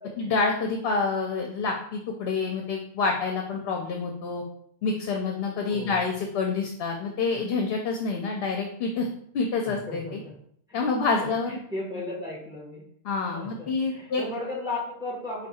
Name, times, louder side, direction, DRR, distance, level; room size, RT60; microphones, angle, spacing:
voice 1, 0.2-4.4 4.8-9.1 9.3-10.0 10.7-11.5 13.0-14.2, left 4 dB, 65° left, 2 dB, 0.8 m, -27 dB
voice 2, 5.7-6.1 9.6-10.3 10.7-12.8 13.3-15.5, left 2 dB, 5° right, -5 dB, 1.3 m, -36 dB
4.5 x 2.3 x 4.1 m, 0.66 s
omnidirectional pair, 1.1 m